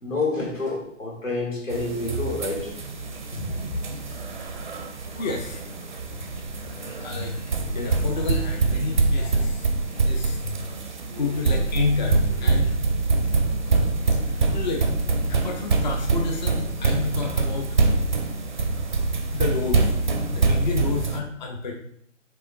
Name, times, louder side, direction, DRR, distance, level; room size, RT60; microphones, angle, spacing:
voice 1, 0.0-2.8 3.4-3.7, left 3 dB, 85° left, -2 dB, 1.9 m, -28 dB
sound 1, 0.9-1.0 2.6-2.7 3.0-13.4 13.8-15.2 15.6-17.6, left 3 dB, 65° left, 1.0 m, -43 dB
sound 2, 1.7-21.2, right 3 dB, 40° right, 0.4 m, -25 dB
voice 2, 5.2-5.7 7.0-7.3 7.7-9.7 10.0-10.4 11.2-12.8 14.3-14.9 15.3-17.7 19.3-19.9 20.3-21.7, left 4 dB, 40° left, 2 dB, 0.4 m, -29 dB
4.8 x 3.8 x 2.6 m, 0.66 s
figure-of-eight pair, 140°, 38 cm